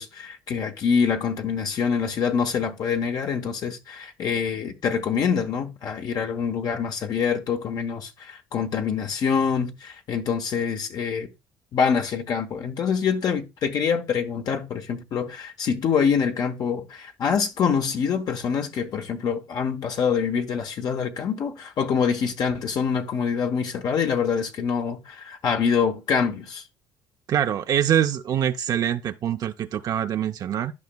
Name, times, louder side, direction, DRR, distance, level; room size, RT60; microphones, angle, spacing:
voice 1, 0.0-11.3 11.7-26.6, left 6 dB, 60° left, 0.9 m, -25 dB
voice 2, 27.3-30.7, right 10 dB, 55° right, 0.4 m, -24 dB
12.0 x 5.2 x 2.2 m
cardioid pair, 90°, 8 cm